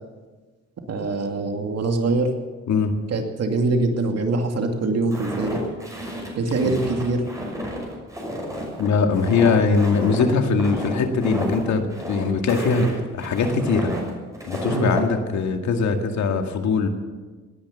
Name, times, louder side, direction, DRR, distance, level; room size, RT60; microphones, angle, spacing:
voice 1, 0.9-2.3 3.1-5.6 6.4-7.2 14.7-14.9, right 3 dB, 55° right, 4 dB, 2.5 m, -23 dB
Walk footsteps, 5.1-15.1, equal, 10° right, 6.0 m, -31 dB
voice 2, 8.8-13.9 14.5-16.9, left 4 dB, 70° left, 5 dB, 2.1 m, -21 dB
18.5 x 10.5 x 7.0 m, 1.3 s
cardioid pair, 90°, 30 cm